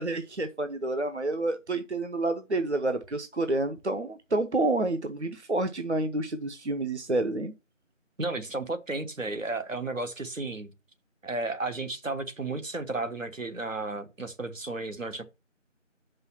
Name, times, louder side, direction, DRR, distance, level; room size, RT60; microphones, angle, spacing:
voice 1, 0.0-7.5, right 2 dB, 60° right, 0.8 m, -29 dB
voice 2, 8.2-10.7 11.2-15.2, right 2 dB, 80° right, 1.4 m, -33 dB
6.2 x 5.5 x 5.6 m
figure-of-eight pair, 180°, 39 cm